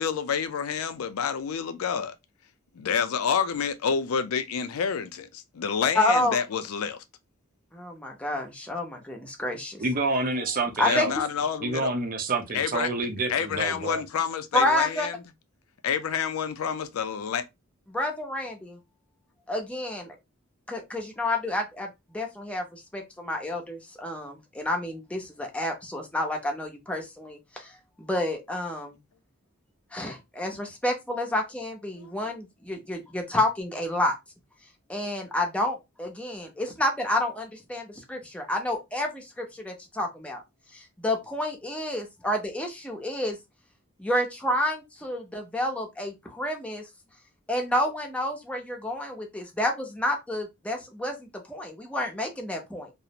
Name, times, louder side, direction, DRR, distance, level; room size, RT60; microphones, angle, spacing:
voice 1, 0.0-2.2 2.7-7.0 10.8-11.9 12.5-12.9 13.3-15.2 15.8-17.5 32.0-32.1, left 7 dB, 85° left, 0.4 m, -28 dB
voice 2, 5.9-6.4 7.7-9.8 10.8-11.3 14.5-15.1 17.9-18.8 19.5-20.2 20.7-21.9 22.1-27.7 28.0-29.0 29.9-34.1 34.9-40.4 40.7-43.4 44.0-46.9 47.5-52.9, left 1 dB, 5° left, 0.5 m, -29 dB
voice 3, 9.8-11.1 11.6-14.0, right 3 dB, 40° right, 0.6 m, -28 dB
2.4 x 2.0 x 2.7 m
head